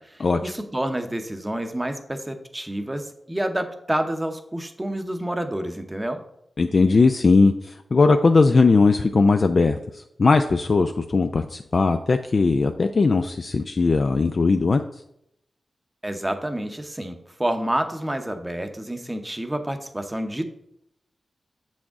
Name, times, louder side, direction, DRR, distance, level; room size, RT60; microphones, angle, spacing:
voice 1, 0.0-6.2 16.0-20.5, right 1 dB, 15° right, 7 dB, 0.7 m, -29 dB
voice 2, 6.6-14.8, left 3 dB, 50° left, 7 dB, 0.3 m, -19 dB
7.7 x 6.2 x 3.6 m, 0.79 s
wide cardioid pair, 105°, 0 cm